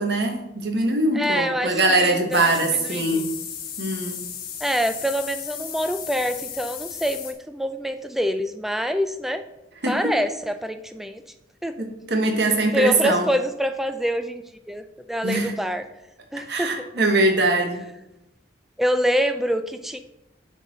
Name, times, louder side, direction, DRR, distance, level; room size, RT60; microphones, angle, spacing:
voice 1, 0.0-3.3 3.8-4.2 9.8-10.0 11.8-13.3 15.2-15.5 16.5-17.9, right 2 dB, 60° right, 3 dB, 1.2 m, -22 dB
voice 2, 1.1-3.3 4.6-9.4 9.9-11.2 11.6-11.7 12.7-15.8 16.3-16.9 18.8-20.0, equal, ahead, 8 dB, 0.3 m, -26 dB
sound 1, 2.3-7.3, left 8 dB, 50° left, 1.0 m, -35 dB
6.5 x 4.0 x 6.4 m, 0.89 s
head